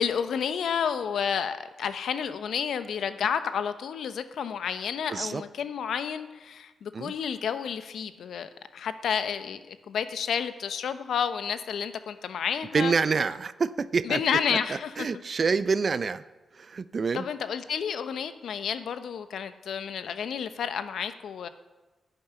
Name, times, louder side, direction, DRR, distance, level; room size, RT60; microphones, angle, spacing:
voice 1, 0.0-12.9 14.0-15.1 17.1-21.5, left 7 dB, 75° left, 11 dB, 1.0 m, -30 dB
voice 2, 5.1-5.4 6.9-7.1 12.7-16.2 16.5-17.2, right 5 dB, 55° right, 15 dB, 0.7 m, -27 dB
11.5 x 9.5 x 9.6 m, 1.2 s
supercardioid pair, 40°, 0 cm